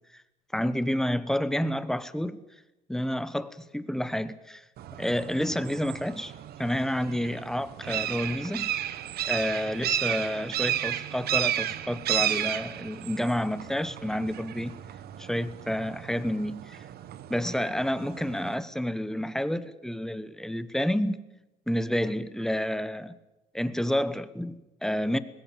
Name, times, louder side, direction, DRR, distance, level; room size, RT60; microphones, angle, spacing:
voice 1, 0.5-2.4 2.9-4.6 5.0-6.3 6.6-8.7 9.2-14.8 15.2-16.8 17.3-21.2 21.7-23.2 23.5-25.2, equal, 5° left, 1.1 m, -29 dB
sound 1, 4.8-18.6, right 12 dB, 70° right, 1.2 m, -33 dB
20.5 x 16.5 x 9.1 m
cardioid pair, 110°, 17 cm